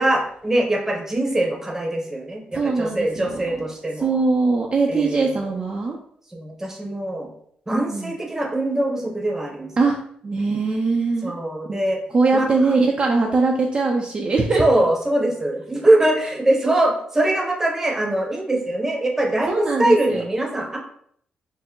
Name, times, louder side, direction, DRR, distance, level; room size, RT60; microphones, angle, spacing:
voice 1, 0.0-4.1 4.9-5.2 6.3-7.3 7.7-9.7 11.2-12.0 12.3-12.4 14.6-20.8, right 1 dB, 15° right, 1 dB, 0.8 m, -22 dB
voice 2, 2.5-3.5 4.0-6.0 7.7-8.1 9.8-10.0 10.2-11.3 11.7-11.8 12.1-14.6 19.5-20.2, right 3 dB, 35° right, 0 dB, 0.5 m, -21 dB
4.5 x 2.0 x 3.7 m, 0.64 s
cardioid pair, 110°, 3 cm